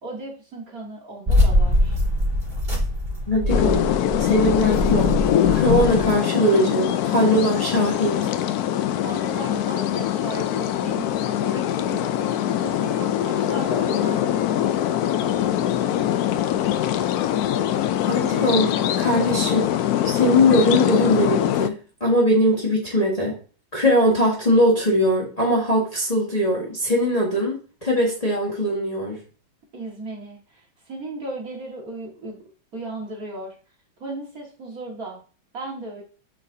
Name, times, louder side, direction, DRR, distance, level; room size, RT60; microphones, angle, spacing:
voice 1, 0.0-2.0 9.0-12.3 12.6-14.2 29.7-32.4 32.7-33.5 34.0-35.2 35.5-36.0, right 2 dB, 45° right, -2 dB, 2.1 m, -36 dB
sound 1, 1.3-6.1, left 1 dB, 30° right, 2.5 m, -23 dB
voice 2, 3.3-3.9 4.2-5.2 5.5-8.3 18.1-19.7 20.0-23.4 23.7-27.5 27.8-29.2, equal, 20° left, -4 dB, 1.5 m, -21 dB
sound 2, 3.5-21.7, left 11 dB, 90° left, 0.8 m, -23 dB
8.4 x 5.0 x 2.7 m, 0.37 s
omnidirectional pair, 2.2 m